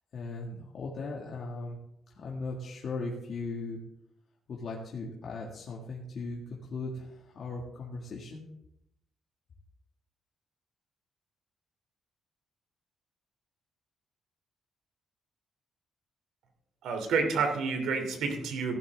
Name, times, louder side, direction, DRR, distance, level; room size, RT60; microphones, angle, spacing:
voice 1, 0.1-1.8 2.1-3.8 4.5-8.5, left 3 dB, 50° left, -3 dB, 2.0 m, -38 dB
voice 2, 16.8-18.8, right 4 dB, 90° right, 4 dB, 2.9 m, -29 dB
16.5 x 11.5 x 3.6 m, 0.80 s
cardioid pair, 155°, 0 cm